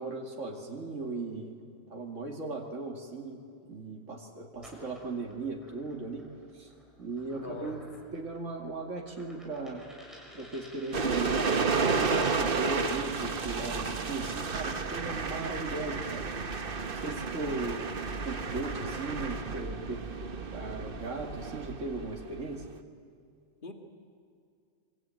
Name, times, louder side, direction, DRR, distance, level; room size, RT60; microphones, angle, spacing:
voice 1, 0.0-1.5 1.9-3.4 3.7-6.3 6.5-6.7 7.0-7.8 8.1-9.8 10.3-11.6 12.1-16.2 16.9-17.8 18.2-22.7, right 3 dB, 70° right, 0 dB, 2.9 m, -37 dB
sound 1, 4.5-12.6, equal, ahead, 6.0 m, -51 dB
voice 2, 7.3-7.8 23.6-23.7, left 2 dB, 40° left, 4 dB, 2.2 m, -41 dB
sound 2, 10.9-22.7, right 4 dB, 45° right, 1.3 m, -32 dB
25.0 x 24.5 x 9.3 m, 2.4 s
omnidirectional pair, 1.4 m